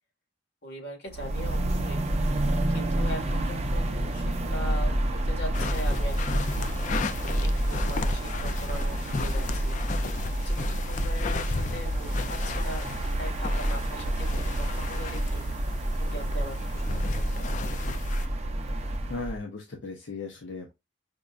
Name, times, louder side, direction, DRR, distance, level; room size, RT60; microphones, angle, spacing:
voice 1, 0.6-2.0 2.4-6.7 7.4-9.8 10.4-12.9 13.2-14.3 14.5-15.7 16.0-17.7, equal, 60° left, 1.6 m, -41 dB
sound 1, 1.1-19.4, right 1 dB, 35° right, 0.6 m, -29 dB
sound 2, 5.5-18.3, left 3 dB, 40° left, 0.3 m, -35 dB
voice 2, 19.1-20.7, left 3 dB, 85° left, 0.6 m, -37 dB
5.1 x 2.3 x 2.4 m
head